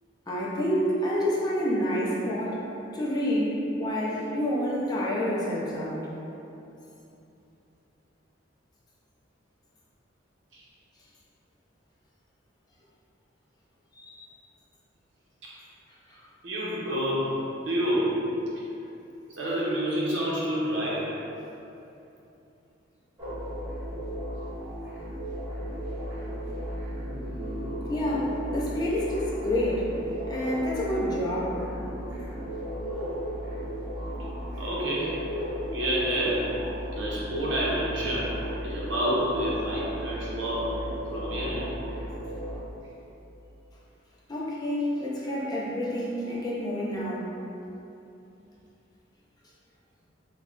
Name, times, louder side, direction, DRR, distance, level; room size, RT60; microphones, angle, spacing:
voice 1, 0.3-2.6 2.9-6.1 13.9-14.3 27.9-29.9 30.3-31.6 44.3-47.3, equal, 20° left, -6 dB, 0.5 m, -28 dB
voice 2, 16.4-17.3 17.7-18.2 19.3-21.1 30.9-31.0 34.6-35.2 35.7-36.5 37.0-38.4 38.6-40.7 41.1-41.7, equal, 70° right, -6 dB, 0.8 m, -28 dB
sound 1, 23.2-42.6, equal, 15° right, 0.8 m, -35 dB
3.1 x 2.3 x 3.6 m, 2.8 s
head